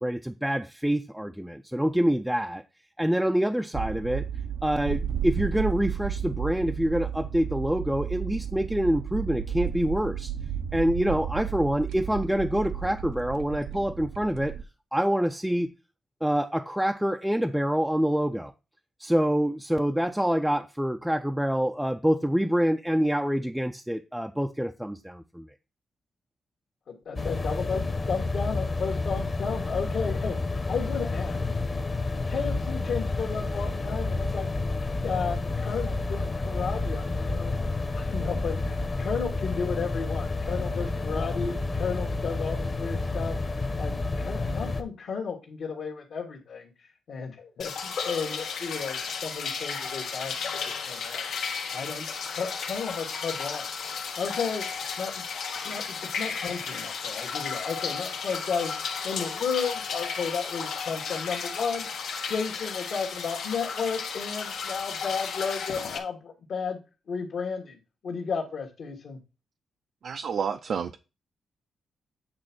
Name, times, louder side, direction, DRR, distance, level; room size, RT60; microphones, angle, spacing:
voice 1, 0.0-2.6 3.0-4.3 4.6-10.3 10.7-14.6 14.9-15.7 16.2-18.5 19.0-25.5, equal, 5° right, 0.4 m, -26 dB
sound 1, 3.7-14.6, right 8 dB, 90° right, 0.7 m, -33 dB
voice 2, 26.9-30.4 30.7-31.4 32.3-34.5 35.0-51.2 51.7-53.7 53.9-54.6 55.0-55.2 55.6-61.9 62.3-66.8 67.1-67.8 68.0-69.2, left 5 dB, 65° left, 1.6 m, -33 dB
sound 2, 27.2-44.8, left 3 dB, 30° left, 1.0 m, -30 dB
sound 3, 47.6-66.0, left 6 dB, 80° left, 1.4 m, -34 dB
voice 3, 70.0-71.0, right 6 dB, 60° right, 0.5 m, -30 dB
8.8 x 3.5 x 6.0 m
cardioid pair, 125°, 0 cm